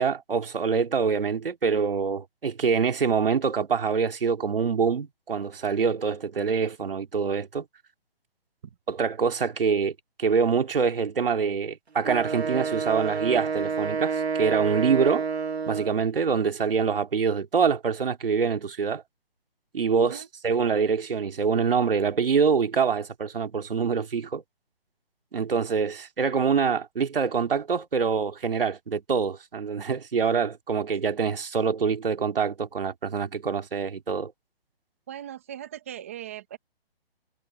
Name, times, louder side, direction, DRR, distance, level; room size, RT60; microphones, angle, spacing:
voice 1, 0.0-7.6 8.9-15.2 15.7-19.0 19.7-24.4 25.3-34.3, right 6 dB, 60° right, 2.7 m, -25 dB
Wind instrument woodwind instrument, 12.0-16.1, right 5 dB, 85° right, 2.3 m, -29 dB
voice 2, 35.1-36.6, right 11 dB, 15° right, 1.1 m, -39 dB
hypercardioid pair, 175°, 31 cm